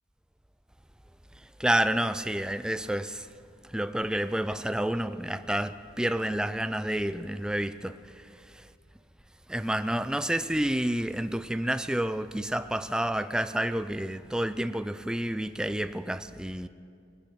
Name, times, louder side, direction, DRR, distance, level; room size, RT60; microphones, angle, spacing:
voice 1, 1.6-3.3 3.6-8.7 9.5-16.7, right 1 dB, 5° right, 0.3 m, -29 dB
20.0 x 9.1 x 6.9 m
head